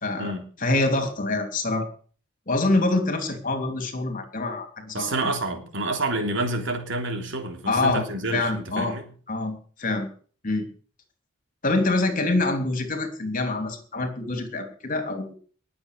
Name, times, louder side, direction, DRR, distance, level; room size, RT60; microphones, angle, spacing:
voice 1, 0.0-0.3 0.6-1.9 2.5-5.3 7.7-8.0 8.3-8.9 9.3-10.1 10.4-10.7 11.6-15.3, left 2 dB, 40° left, 6 dB, 3.2 m, -25 dB
voice 2, 4.9-9.1, right 2 dB, 65° right, 4 dB, 3.5 m, -28 dB
20.5 x 7.8 x 6.7 m, 0.44 s
head